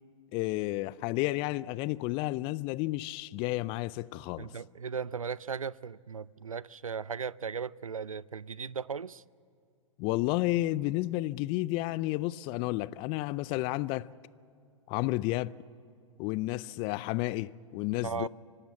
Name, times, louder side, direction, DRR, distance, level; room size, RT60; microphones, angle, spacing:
voice 1, 0.3-4.5 10.0-14.1 14.9-15.5 16.2-18.3, left 18 dB, 30° left, 0.4 m, -31 dB
voice 2, 4.4-9.2 18.0-18.3, right 6 dB, 85° right, 0.4 m, -37 dB
25.5 x 12.5 x 8.6 m
figure-of-eight pair, 110°, 17 cm